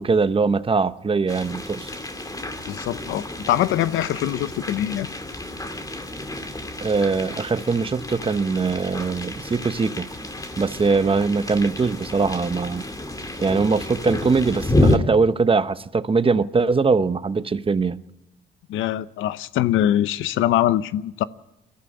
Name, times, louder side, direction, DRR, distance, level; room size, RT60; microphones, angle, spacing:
voice 1, 0.0-1.9 6.8-10.1 10.6-12.8 13.4-18.0, right 4 dB, 25° right, 0.9 m, -21 dB
sound 1, 1.3-15.0, left 1 dB, 20° left, 2.2 m, -29 dB
voice 2, 2.6-5.1 18.7-21.2, left 12 dB, 90° left, 0.7 m, -23 dB
22.5 x 14.5 x 8.5 m
cardioid pair, 90°, 20 cm